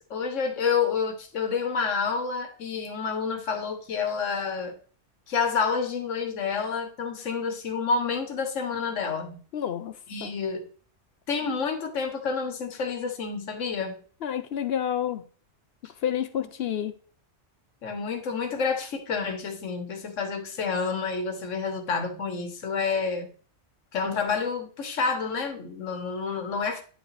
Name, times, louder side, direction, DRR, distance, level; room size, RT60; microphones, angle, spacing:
voice 1, 0.1-4.7 5.3-9.4 10.1-10.6 11.3-14.0 16.4-16.5 17.8-23.3 23.9-26.8, left 5 dB, 90° left, 1.4 m, -29 dB
voice 2, 9.5-10.4 14.2-15.2 16.0-16.9, left 9 dB, 65° left, 0.7 m, -29 dB
10.0 x 4.8 x 3.2 m
omnidirectional pair, 1.3 m